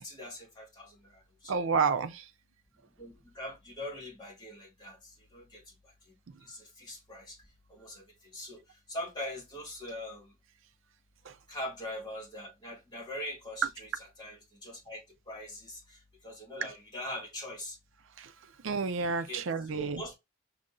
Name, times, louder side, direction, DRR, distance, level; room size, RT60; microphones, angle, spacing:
voice 1, 0.0-1.0 1.4-1.6 3.0-5.0 5.3-5.6 6.5-7.3 7.7-8.0 8.3-8.6 8.9-10.3 11.5-15.0 15.3-15.8 16.2-17.8 19.3-20.1, left 1 dB, 20° left, 2.0 m, -42 dB
voice 2, 1.5-2.1 18.6-20.0, right 5 dB, 80° right, 0.5 m, -29 dB
5.2 x 2.7 x 2.5 m
head